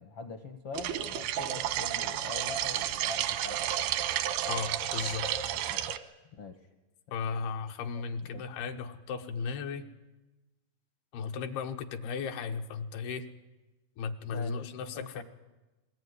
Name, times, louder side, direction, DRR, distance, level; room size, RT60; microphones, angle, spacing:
voice 1, 0.0-3.7 5.5-5.8 6.4-6.6 7.9-8.4 14.3-14.6 14.9-15.2, left 3 dB, 70° left, 6 dB, 1.4 m, -43 dB
sound 1, 0.7-6.0, right 11 dB, 90° right, 3.0 m, -31 dB
voice 2, 4.5-5.3 7.1-9.9 11.1-13.3 14.0-15.2, left 5 dB, 85° left, 5 dB, 3.2 m, -35 dB
21.5 x 19.0 x 9.6 m, 1.1 s
omnidirectional pair, 4.4 m